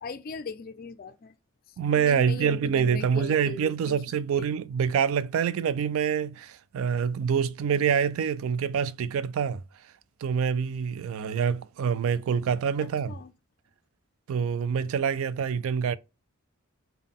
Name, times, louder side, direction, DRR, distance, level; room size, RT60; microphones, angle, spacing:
voice 1, 0.0-1.3 1.9-4.0 4.3-4.5 13.1-13.3, left 4 dB, 40° left, 0.3 m, -39 dB
voice 2, 1.8-9.6 10.2-13.1 14.3-16.0, right 7 dB, 70° right, 0.3 m, -26 dB
3.6 x 2.2 x 3.6 m
head